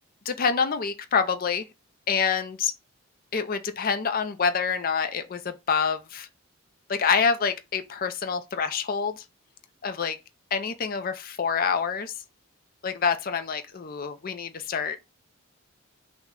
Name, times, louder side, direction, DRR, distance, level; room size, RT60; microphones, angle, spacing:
voice 1, 0.3-1.7 2.1-2.7 3.3-6.3 6.9-9.2 9.8-10.2 10.5-12.1 12.8-15.0, left 6 dB, 40° left, 0.5 m, -26 dB
5.9 x 2.2 x 3.7 m
head